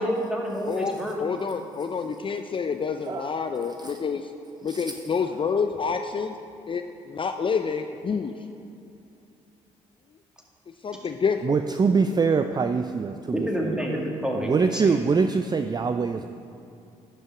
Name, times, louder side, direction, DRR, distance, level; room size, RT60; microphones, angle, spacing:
voice 1, 0.0-1.2 10.9-11.0 13.3-15.0, equal, 5° right, -1 dB, 2.0 m, -28 dB
voice 2, 0.7-4.2 4.6-6.3 6.7-8.3 10.8-11.6, left 5 dB, 35° left, 7 dB, 0.5 m, -28 dB
voice 3, 3.0-4.0 4.7-4.9 11.4-13.7 14.3-16.3, right 5 dB, 25° right, 8 dB, 0.4 m, -24 dB
11.0 x 5.4 x 4.9 m, 2.6 s
hypercardioid pair, 45°, 16 cm